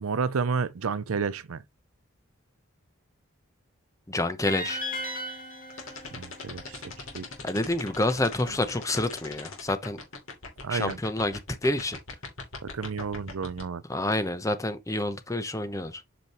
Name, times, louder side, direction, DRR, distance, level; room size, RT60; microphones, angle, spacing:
voice 1, 0.0-1.6 6.1-7.3 10.6-11.0 12.6-13.8, right 5 dB, 75° right, 0.5 m, -31 dB
voice 2, 4.1-4.8 7.4-10.0 10.7-12.0 13.9-16.0, left 1 dB, 15° left, 0.7 m, -28 dB
sound 1, 4.5-7.6, left 1 dB, 40° left, 3.1 m, -37 dB
sound 2, 5.7-13.6, left 4 dB, 70° left, 2.9 m, -39 dB
8.2 x 5.2 x 3.0 m
head